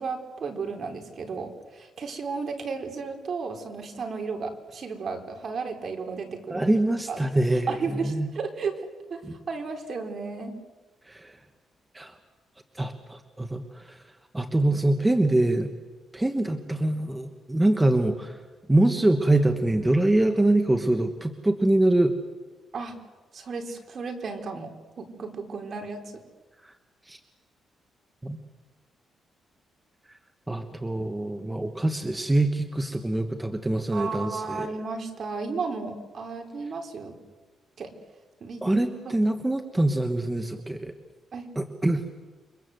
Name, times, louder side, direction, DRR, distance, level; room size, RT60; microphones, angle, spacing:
voice 1, 0.0-6.8 7.1-7.2 7.5-8.8 9.1-9.2 9.5-10.6 22.7-23.0 23.3-24.7 25.0-26.0 33.9-37.2 37.8-37.9 38.4-38.7 41.3-41.5, right 4 dB, 45° right, 3 dB, 4.2 m, -33 dB
voice 2, 6.5-7.7 8.0-8.3 9.2-9.3 11.1-11.4 11.9-12.1 12.8-14.0 14.3-15.7 16.1-18.4 18.7-22.1 26.6-26.7 27.1-27.2 28.2-28.4 30.5-34.7 38.6-40.9 41.6-42.0, right 1 dB, 10° right, 6 dB, 1.5 m, -24 dB
29.0 x 24.0 x 8.0 m, 1.3 s
cardioid pair, 120°, 0 cm